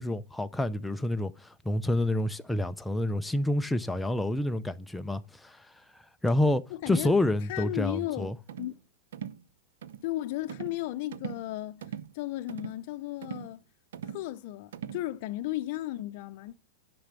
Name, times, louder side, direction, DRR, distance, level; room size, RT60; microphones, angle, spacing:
voice 1, 0.0-5.7 5.9-8.4, left 1 dB, 5° left, 0.5 m, -28 dB
voice 2, 6.7-7.1 7.5-8.8 10.0-13.6 14.0-16.5, left 15 dB, 55° left, 0.6 m, -35 dB
sound 1, 8.5-8.8 9.1-9.4 9.8-10.1 10.5-10.8 11.1-11.5 11.8-12.1 12.5-12.8 13.2-13.5 13.9-14.3 14.7-15.1, right 9 dB, 80° right, 0.7 m, -40 dB
10.0 x 6.1 x 6.7 m
supercardioid pair, 140°, 0 cm